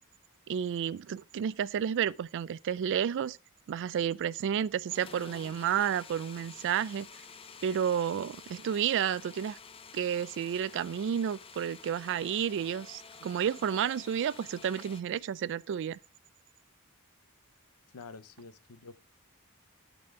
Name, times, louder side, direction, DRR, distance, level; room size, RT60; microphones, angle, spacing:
voice 1, 0.5-3.4 3.7-7.1 7.6-9.6 9.9-16.0, right 8 dB, 55° right, 0.3 m, -31 dB
sound 1, 4.9-15.0, left 6 dB, 25° left, 0.4 m, -50 dB
voice 2, 17.9-18.9, left 4 dB, 90° left, 0.7 m, -48 dB
12.0 x 4.2 x 3.6 m
head